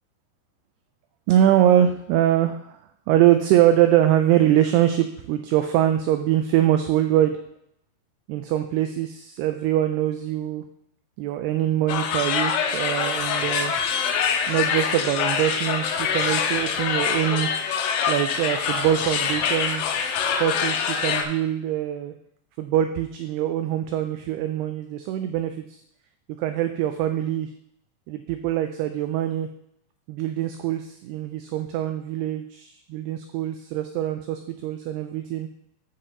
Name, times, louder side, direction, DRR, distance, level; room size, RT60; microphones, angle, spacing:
voice 1, 1.3-2.8 3.1-7.4 8.3-10.6 11.2-13.7 14.5-17.5 18.1-19.9 20.4-22.1 22.6-25.6 26.4-27.5 28.1-29.5 30.1-35.5, right 11 dB, 90° right, 7 dB, 2.3 m, -23 dB
sound 1, 11.9-21.2, left 6 dB, 80° left, 2.8 m, -25 dB
12.5 x 5.6 x 2.8 m, 0.73 s
omnidirectional pair, 5.1 m